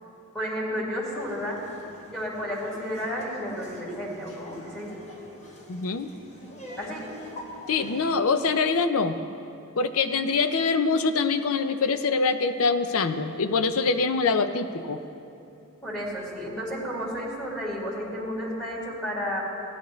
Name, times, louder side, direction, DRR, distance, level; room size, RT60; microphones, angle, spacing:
voice 1, 0.3-1.6 2.1-4.9 6.8-7.1 15.8-19.4, equal, 5° left, -7 dB, 2.2 m, -32 dB
Laughter, 1.1-8.0, left 1 dB, 30° left, 1.1 m, -45 dB
voice 2, 5.7-6.1 7.7-9.2 9.8-15.0, left 4 dB, 70° left, 10 dB, 0.6 m, -24 dB
16.5 x 11.0 x 3.1 m, 2.8 s
head